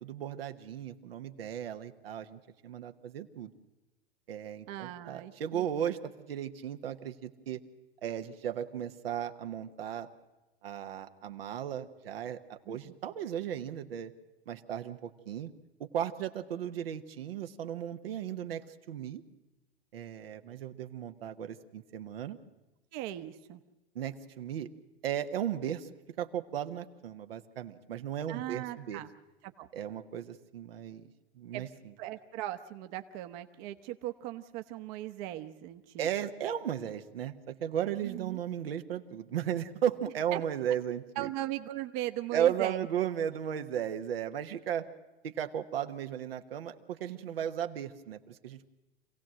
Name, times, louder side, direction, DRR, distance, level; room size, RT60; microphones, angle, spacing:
voice 1, 0.0-3.5 4.3-7.6 8.0-10.1 10.6-14.1 14.5-15.5 15.8-19.2 19.9-22.4 23.9-24.7 25.0-25.9 26.2-29.0 29.7-31.1 31.4-31.7 36.0-41.3 42.3-44.9 45.2-48.7, right 9 dB, 75° right, 6 dB, 1.2 m, -35 dB
voice 2, 4.7-5.6 12.7-13.0 22.9-23.6 28.3-29.1 29.4-29.7 31.5-31.7 32.0-36.1 38.0-38.4 40.3-40.4 41.2-42.9, right 14 dB, 50° right, 8 dB, 1.1 m, -38 dB
26.5 x 16.5 x 7.6 m, 1.1 s
hypercardioid pair, 100°, 30 cm